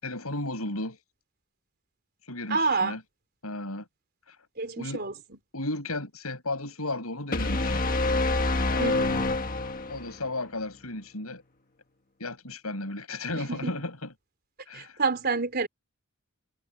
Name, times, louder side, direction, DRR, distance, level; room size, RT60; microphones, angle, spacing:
voice 1, 0.0-1.0 2.2-3.0 3.4-3.9 4.3-4.4 4.8-5.0 5.5-7.8 9.9-11.4 12.2-14.1 14.7-15.0, left 2 dB, 80° left, 7.2 m, -34 dB
voice 2, 2.5-3.0 4.6-5.4 8.8-9.3 13.3-13.7 14.7-15.7, right 4 dB, 45° right, 3.8 m, -29 dB
sound 1, 7.3-10.2, left 2 dB, 40° left, 1.5 m, -26 dB
head